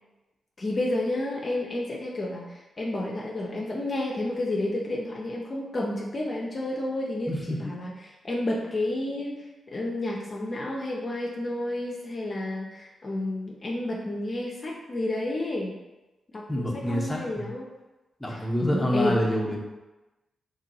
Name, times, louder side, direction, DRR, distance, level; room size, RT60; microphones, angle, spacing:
voice 1, 0.6-7.3 7.6-7.9 8.2-15.8 16.3-17.7 18.3-19.2, left 1 dB, 45° left, -2 dB, 0.5 m, -30 dB
voice 2, 7.3-7.7 16.5-17.5 18.2-19.6, equal, 10° left, -3 dB, 0.8 m, -27 dB
2.8 x 2.6 x 2.7 m, 1.1 s
hypercardioid pair, 40°, 0 cm